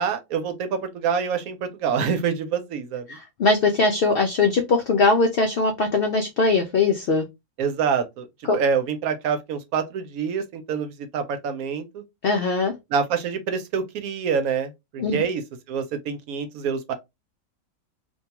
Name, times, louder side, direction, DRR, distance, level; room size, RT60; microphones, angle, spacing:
voice 1, 0.0-3.2 7.6-8.3 8.5-12.0 12.9-15.4 15.7-16.9, right 6 dB, 80° right, 1.0 m, -26 dB
voice 2, 3.1-7.2 8.5-8.6 12.2-12.7 15.0-15.2, left 3 dB, 80° left, 0.5 m, -21 dB
2.6 x 2.2 x 2.8 m
omnidirectional pair, 1.5 m